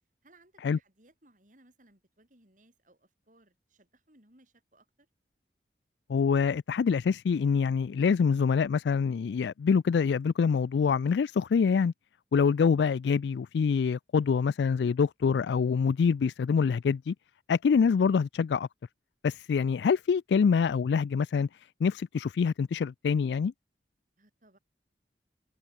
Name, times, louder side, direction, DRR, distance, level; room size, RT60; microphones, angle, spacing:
voice 1, 0.2-5.1 12.3-12.6 24.2-24.6, right 1 dB, 45° right, 6.3 m, -63 dB
voice 2, 6.1-11.9 12.3-17.1 17.5-18.7 19.2-21.5 21.8-23.5, left 6 dB, 75° left, 0.3 m, -25 dB
head